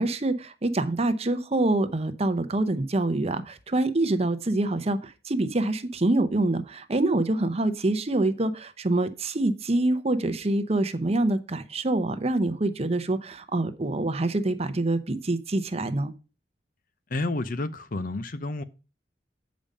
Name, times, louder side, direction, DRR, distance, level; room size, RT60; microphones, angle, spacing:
voice 1, 0.0-16.1, right 2 dB, 35° right, 0.8 m, -26 dB
voice 2, 17.1-18.6, left 2 dB, 50° left, 0.7 m, -30 dB
8.7 x 5.2 x 5.4 m
head